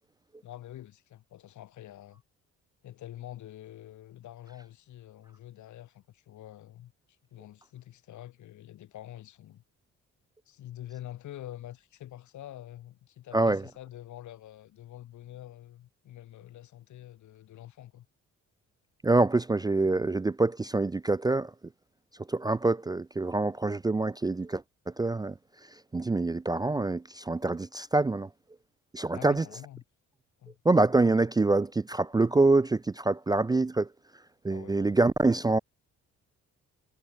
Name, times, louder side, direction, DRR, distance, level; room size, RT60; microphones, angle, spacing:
voice 1, 0.4-2.2 2.8-6.9 7.3-9.6 10.5-18.1 29.1-29.8 30.4-30.6 34.5-35.0, left 13 dB, 70° left, 1.8 m, -46 dB
voice 2, 19.0-21.5 22.3-24.6 25.0-25.3 25.9-28.3 28.9-29.4 30.7-33.9 34.4-35.6, right 2 dB, 15° right, 0.4 m, -25 dB
cardioid pair, 90°, 30 cm